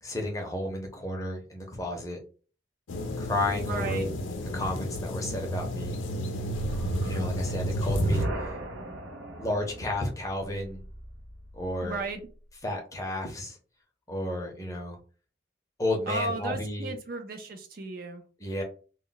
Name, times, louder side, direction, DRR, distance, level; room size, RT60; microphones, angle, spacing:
voice 1, 0.0-2.2 3.2-4.1 4.5-6.0 7.0-8.3 9.4-10.8 11.5-12.0 12.6-13.6 14.1-15.0 15.8-16.9 18.4-18.6, left 1 dB, 15° left, 0.6 m, -32 dB
sound 1, 2.9-8.3, equal, 85° left, 0.5 m, -33 dB
voice 2, 3.7-4.1 11.8-12.2 16.1-18.2, right 3 dB, 45° right, 0.4 m, -34 dB
sound 2, 6.5-11.8, equal, 80° right, 0.7 m, -34 dB
2.1 x 2.1 x 3.8 m
head